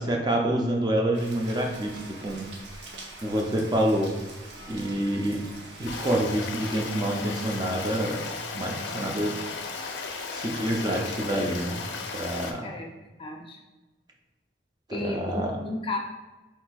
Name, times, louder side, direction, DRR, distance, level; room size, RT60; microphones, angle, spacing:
voice 1, 0.0-2.5 3.2-4.1 4.7-5.4 5.8-8.2 8.5-9.4 10.3-11.8 12.1-12.7 15.0-15.5, right 1 dB, 25° right, 1 dB, 0.5 m, -27 dB
Rain, 1.1-6.1, right 2 dB, 75° right, 0.7 m, -44 dB
Stream, 5.9-12.5, left 4 dB, 85° left, 0.5 m, -35 dB
voice 2, 12.6-13.6 14.9-16.0, left 2 dB, 30° left, 1 dB, 0.5 m, -34 dB
4.3 x 4.0 x 2.3 m, 1.2 s
head